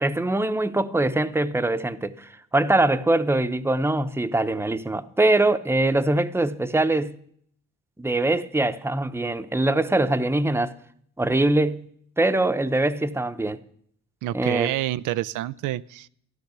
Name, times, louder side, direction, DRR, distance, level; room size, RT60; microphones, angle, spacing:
voice 1, 0.0-7.2 8.0-10.7 11.2-11.9 12.2-13.6 14.3-14.7, right 2 dB, 10° right, 0.8 m, -23 dB
voice 2, 14.2-16.1, right 15 dB, 90° right, 0.5 m, -28 dB
13.5 x 11.5 x 6.7 m
cardioid pair, 90°, 30 cm